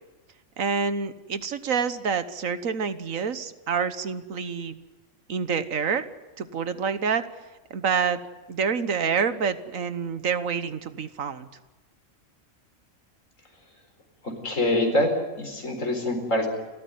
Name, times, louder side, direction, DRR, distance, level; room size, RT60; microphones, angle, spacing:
voice 1, 0.6-4.8 5.3-6.1 6.4-7.3 7.7-8.2 8.5-11.5, right 6 dB, 75° right, 12 dB, 1.6 m, -27 dB
voice 2, 14.2-16.5, left 1 dB, 65° left, 5 dB, 4.6 m, -25 dB
29.5 x 14.0 x 9.4 m, 1.2 s
omnidirectional pair, 1.4 m